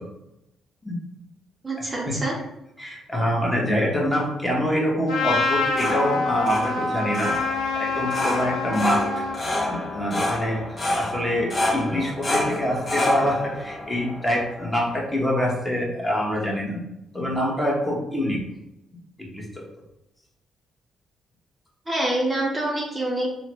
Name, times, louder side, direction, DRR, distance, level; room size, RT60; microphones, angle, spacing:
voice 1, 1.6-2.3 21.9-23.3, right 1 dB, 25° right, -2 dB, 0.6 m, -26 dB
voice 2, 2.8-9.0 9.7-10.6 10.9-16.8 17.1-18.4 19.2-19.6, equal, 10° left, -2 dB, 0.9 m, -25 dB
Trumpet, 5.1-9.4, left 3 dB, 85° left, 0.8 m, -26 dB
sound 1, 5.4-15.1, left 1 dB, 35° left, 0.7 m, -29 dB
3.1 x 2.1 x 2.9 m, 0.88 s
cardioid pair, 90°, 0 cm